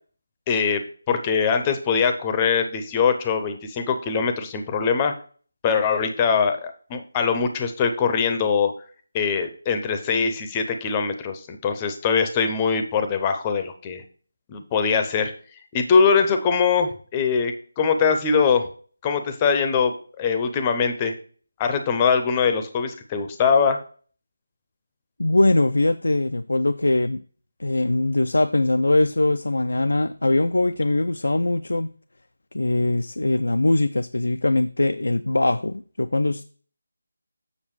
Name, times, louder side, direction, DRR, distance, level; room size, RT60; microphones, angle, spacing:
voice 1, 0.5-5.1 5.6-8.7 9.1-14.0 14.5-15.3 15.7-18.7 19.0-21.1 21.6-23.8, left 6 dB, 20° left, 7 dB, 0.6 m, -22 dB
voice 2, 25.2-27.2 27.6-31.9 32.5-36.4, left 2 dB, 70° left, 10 dB, 0.3 m, -21 dB
7.3 x 6.6 x 3.1 m, 0.43 s
figure-of-eight pair, 160°, 0 cm